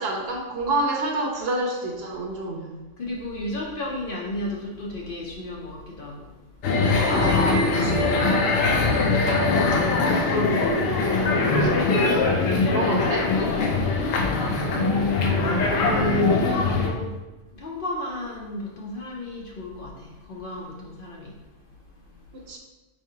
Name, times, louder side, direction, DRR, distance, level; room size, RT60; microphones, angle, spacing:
voice 1, 0.0-2.7 7.1-8.4 10.2-10.8 11.7-12.2 12.7-13.3 22.3-22.6, right 2 dB, 55° right, 0 dB, 0.9 m, -28 dB
voice 2, 3.0-6.3 14.7-17.2 17.5-22.4, left 1 dB, 55° left, -2 dB, 0.7 m, -32 dB
sound 1, 6.6-16.9, left 3 dB, 80° left, 1.0 m, -22 dB
4.7 x 3.2 x 2.7 m, 1.1 s
omnidirectional pair, 1.4 m